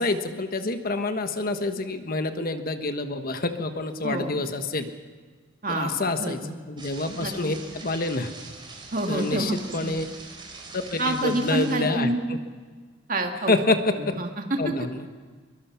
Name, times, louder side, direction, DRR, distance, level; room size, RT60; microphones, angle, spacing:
voice 1, 0.0-4.9 5.7-8.3 9.1-10.0 10.7-12.1 13.5-14.2 14.6-15.0, left 2 dB, 45° left, 7 dB, 1.3 m, -27 dB
voice 2, 5.6-6.4 7.2-7.6 8.9-9.6 9.8-9.9 11.0-12.3 13.1-13.6 14.0-14.6, right 2 dB, 45° right, 4 dB, 2.3 m, -27 dB
sound 1, 6.8-11.8, right 3 dB, 25° right, 4.0 m, -43 dB
22.5 x 22.5 x 5.8 m, 1.5 s
head